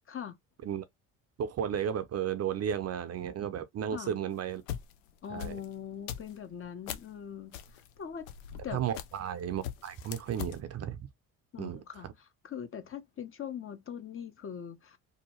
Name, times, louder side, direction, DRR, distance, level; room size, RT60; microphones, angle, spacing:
voice 1, 1.4-4.6 5.3-5.6 8.7-11.1 11.6-11.8, right 9 dB, 40° right, 0.5 m, -34 dB
sound 1, 4.4-7.2 7.5-9.4 9.6-10.6, left 10 dB, 85° left, 0.5 m, -41 dB
voice 2, 5.2-8.3 8.6-8.8 11.5-15.0, left 8 dB, 35° left, 0.6 m, -42 dB
2.7 x 2.2 x 2.9 m
hypercardioid pair, 65°, 41 cm